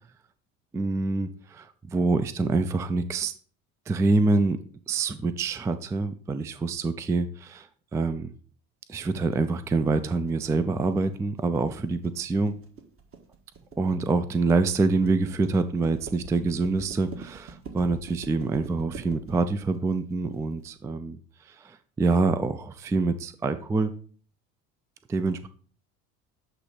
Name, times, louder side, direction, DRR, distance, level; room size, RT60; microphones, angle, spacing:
voice 1, 0.7-3.3 3.9-4.6 4.9-7.7 7.9-8.3 8.9-12.6 13.8-21.2 21.5-23.9 25.1-25.5, right 3 dB, 10° right, 12 dB, 0.3 m, -26 dB
sound 1, 9.1-20.7, right 4 dB, 30° right, 1.6 m, -45 dB
8.0 x 3.0 x 5.0 m, 0.43 s
hypercardioid pair, 75°, 41 cm